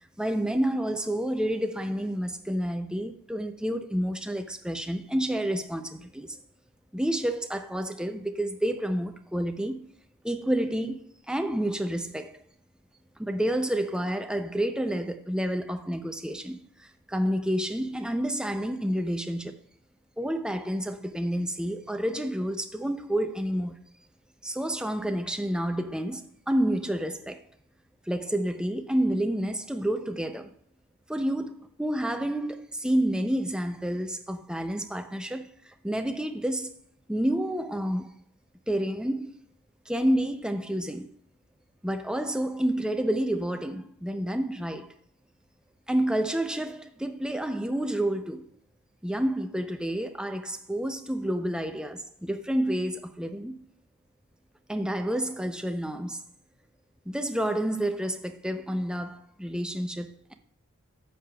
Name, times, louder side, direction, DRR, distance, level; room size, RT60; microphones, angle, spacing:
voice 1, 0.2-6.4 6.9-9.9 10.2-12.4 13.2-19.5 20.2-23.8 24.4-27.4 28.1-30.5 31.1-36.7 37.1-38.1 38.7-39.3 39.9-41.1 41.8-44.9 45.9-48.5 49.0-53.7 54.7-56.2 57.1-60.3, right 1 dB, 5° right, 0.4 m, -29 dB
9.8 x 7.4 x 2.3 m
head